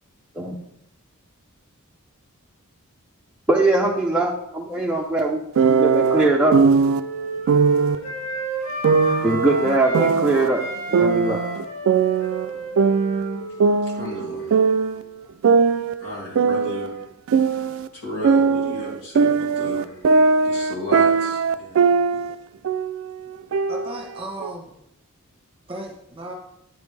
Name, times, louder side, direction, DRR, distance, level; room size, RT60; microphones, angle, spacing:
voice 1, 3.5-5.4 5.7-6.6 9.2-10.6 10.9-11.4, right 2 dB, 5° right, -3 dB, 0.5 m, -21 dB
sound 1, 5.6-7.0 7.5-8.0 8.8-10.5 10.9-12.5 12.8-15.0 15.4-17.9 18.2-22.4 22.6-23.0 23.5-24.5, right 5 dB, 60° right, 0.3 m, -19 dB
Wind instrument woodwind instrument, 6.8-10.1 10.4-14.9, right 2 dB, 55° left, 2.6 m, -33 dB
voice 2, 13.8-14.6 16.0-17.0 17.9-20.1 20.4-22.3, left 1 dB, 80° left, -5 dB, 2.9 m, -34 dB
voice 3, 23.7-24.7 25.7-26.3, right 2 dB, 25° right, 0 dB, 1.2 m, -35 dB
8.9 x 5.1 x 3.3 m, 0.80 s
head